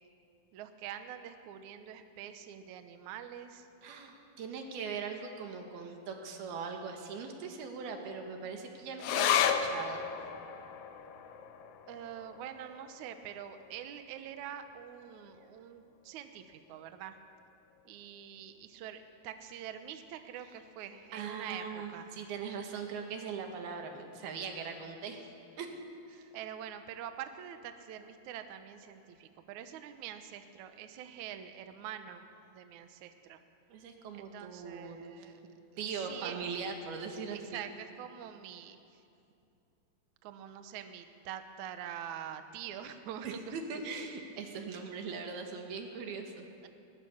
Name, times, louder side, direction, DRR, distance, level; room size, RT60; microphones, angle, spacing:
voice 1, 0.5-3.7 11.9-17.2 17.9-22.1 26.3-32.3 32.5-33.4 34.1-35.4 35.9-36.5 37.3-39.0 40.2-43.6 46.6-46.7, right 9 dB, 65° right, 8 dB, 2.0 m, -45 dB
voice 2, 3.8-10.0 21.1-25.3 25.6-25.8 26.1-26.3 33.7-37.6 43.2-46.5, right 5 dB, 85° right, 3 dB, 3.8 m, -40 dB
sound 1, 9.0-15.8 16.1-16.2 16.5-17.2 17.8-17.9, left 8 dB, 70° left, 2.1 m, -35 dB
20.5 x 20.0 x 7.2 m, 2.6 s
omnidirectional pair, 4.3 m